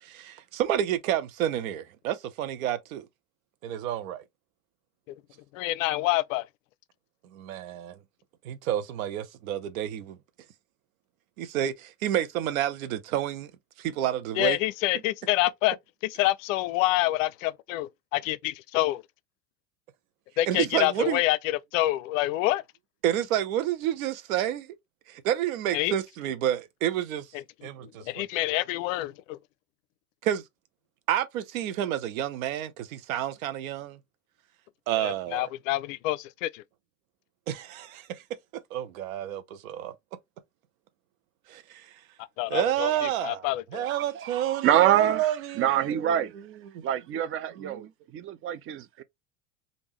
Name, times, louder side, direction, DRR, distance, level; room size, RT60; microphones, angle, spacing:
voice 1, 0.0-3.1 3.6-4.2 7.3-8.0 8.4-10.2 11.4-13.5 13.8-14.6 20.5-21.2 23.0-24.7 25.1-27.3 27.6-28.2 30.2-30.4 31.1-34.0 34.9-35.5 37.5-38.2 38.7-39.9 41.5-41.9 42.5-46.3 46.7-46.8 47.6-47.9, right 11 dB, 70° right, 0.8 m, -29 dB
voice 2, 5.5-6.5 14.3-15.8 16.0-19.0 20.4-22.6 25.7-25.9 27.3-27.7 28.0-29.4 35.0-36.6 42.4-43.9, left 17 dB, 65° left, 0.5 m, -27 dB
voice 3, 43.9-45.3 45.6-46.3 46.8-47.9 48.1-49.0, right 11 dB, 30° right, 0.4 m, -25 dB
3.5 x 2.5 x 3.0 m
hypercardioid pair, 85°, 43 cm